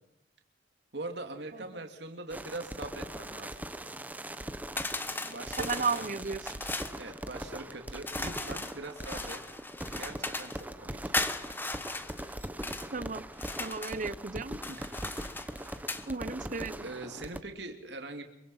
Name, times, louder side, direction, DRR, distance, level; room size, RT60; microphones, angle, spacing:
voice 1, 0.9-3.6 5.2-5.8 7.0-9.4 9.9-11.1 14.7-14.9 16.8-18.2, right 2 dB, 70° right, 5 dB, 2.7 m, -42 dB
sound 1, 2.3-17.4, right 1 dB, 10° right, 1.0 m, -41 dB
sound 2, 4.8-7.0 8.0-10.6 11.1-12.9 13.3-14.0 14.5-16.1, left 2 dB, 10° left, 1.3 m, -37 dB
voice 2, 5.6-6.4 12.9-13.2 13.6-14.6 16.1-16.8, right 4 dB, 45° right, 17 dB, 0.9 m, -33 dB
25.5 x 24.5 x 5.7 m, 0.89 s
head